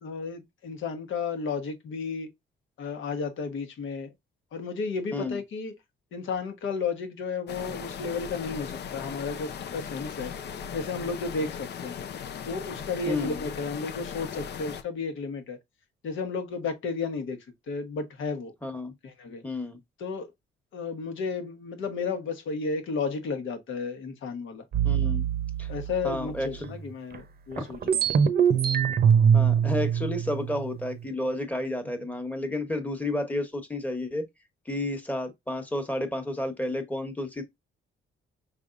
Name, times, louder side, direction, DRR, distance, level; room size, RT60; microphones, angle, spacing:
voice 1, 0.0-2.3 2.8-4.1 4.5-5.7 6.1-10.3 10.7-12.0 12.4-15.6 16.0-17.4 17.7-18.5 19.0-19.4 20.0-20.3 20.7-24.6 25.7-28.1, left 4 dB, 70° left, 1.2 m, -33 dB
sound 1, 7.5-14.8, left 7 dB, 55° left, 0.6 m, -38 dB
voice 2, 13.1-13.4 18.6-18.9 19.4-19.8 24.8-25.2 25.6-25.7 26.0-26.7 29.3-34.2 34.7-37.4, left 1 dB, 5° left, 1.2 m, -31 dB
sound 2, 24.7-26.6 27.1-27.2 27.5-31.0, right 7 dB, 50° right, 0.7 m, -24 dB
5.4 x 3.4 x 2.5 m
cardioid pair, 100°, 21 cm